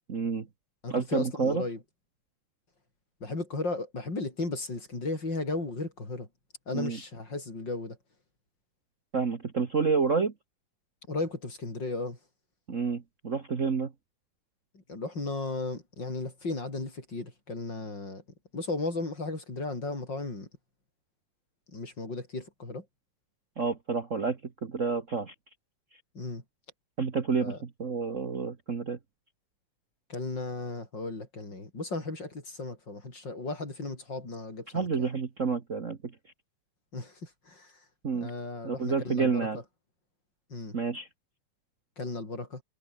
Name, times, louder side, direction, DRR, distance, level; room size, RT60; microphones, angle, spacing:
voice 1, 0.1-0.5 0.9-1.6 6.7-7.0 9.1-10.3 12.7-13.9 23.6-25.3 27.0-29.0 34.7-36.1 38.0-38.3 38.6-39.6 40.7-41.1, right 5 dB, 70° right, 0.7 m, -29 dB
voice 2, 0.8-1.8 3.2-6.3 6.7-8.0 11.1-12.2 14.7-18.2 18.5-20.5 21.7-22.9 26.1-26.4 27.4-27.6 30.1-35.1 36.9-37.8 38.1-39.6 40.5-40.8 42.0-42.6, left 2 dB, 30° left, 6.3 m, -35 dB
omnidirectional pair, 4.1 m